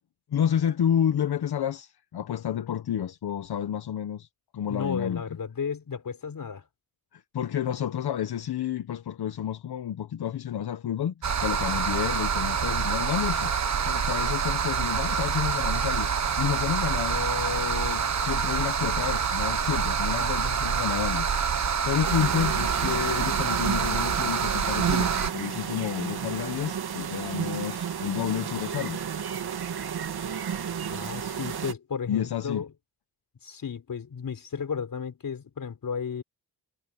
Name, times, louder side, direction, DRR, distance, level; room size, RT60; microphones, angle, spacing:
voice 1, 0.3-4.3 4.5-5.2 7.1-11.1 11.4-13.5 13.8-29.0 32.1-32.6, left 9 dB, 90° left, 1.0 m, -30 dB
voice 2, 4.7-6.6 30.9-32.7 33.4-36.2, left 6 dB, 60° left, 4.6 m, -33 dB
sound 1, 11.2-25.3, right 6 dB, 45° right, 1.2 m, -26 dB
sound 2, 22.0-31.7, right 8 dB, 80° right, 2.2 m, -32 dB
wide cardioid pair, 160°, 37 cm